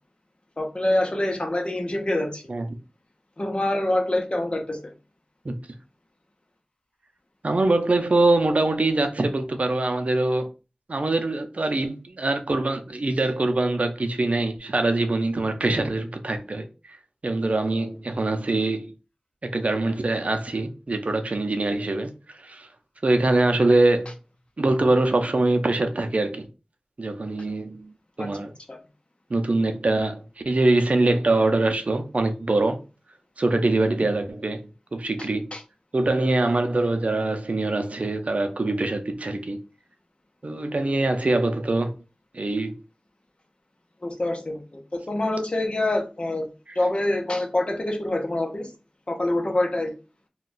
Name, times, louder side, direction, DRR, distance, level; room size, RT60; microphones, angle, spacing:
voice 1, 0.6-2.4 3.4-4.8 28.2-28.3 28.7-28.8 35.5-35.6 44.0-46.5 46.7-48.7 49.1-49.9, left 1 dB, 45° left, 0.7 m, -25 dB
voice 2, 7.4-10.5 10.9-17.0 17.2-18.9 19.5-22.7 23.0-24.1 24.6-26.5 27.0-28.5 29.3-32.8 33.4-35.6 35.9-39.6 40.4-41.9 42.3-42.8, right 2 dB, 60° right, 0.5 m, -23 dB
2.4 x 2.2 x 3.7 m
wide cardioid pair, 45°, 3 cm